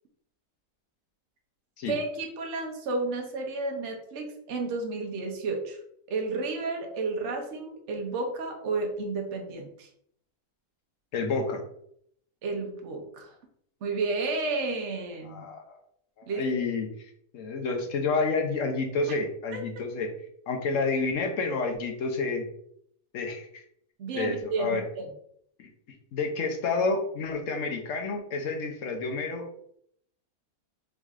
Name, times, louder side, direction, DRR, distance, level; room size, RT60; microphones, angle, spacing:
voice 1, 1.9-5.8 6.1-9.9 12.4-13.3 13.8-15.5 16.3-16.5 19.5-19.6 24.0-25.1, right 3 dB, 55° right, 2 dB, 1.0 m, -32 dB
voice 2, 11.1-11.6 15.2-15.8 16.2-16.9 17.3-20.1 20.5-22.4 23.1-23.6 24.1-24.8 25.6-25.7 26.1-29.5, left 3 dB, 60° left, 4 dB, 1.0 m, -29 dB
3.7 x 3.2 x 3.6 m, 0.70 s
omnidirectional pair, 1.6 m